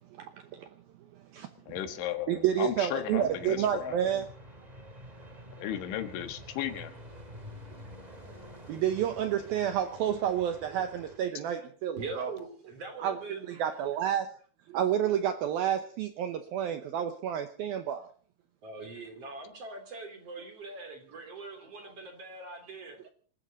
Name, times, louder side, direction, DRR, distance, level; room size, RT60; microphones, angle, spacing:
voice 1, 0.1-0.7 1.3-1.5 2.3-4.3 8.7-12.3 13.0-14.3 14.7-18.1, right 10 dB, 75° right, 9 dB, 2.3 m, -30 dB
voice 2, 1.7-4.0 5.6-6.9, left 11 dB, 85° left, 9 dB, 4.0 m, -35 dB
sound 1, 3.1-11.2, equal, 15° right, 1.5 m, -48 dB
voice 3, 12.0-13.5 18.6-23.0, right 3 dB, 35° right, 6 dB, 3.5 m, -42 dB
27.0 x 13.0 x 4.0 m, 0.43 s
omnidirectional pair, 5.3 m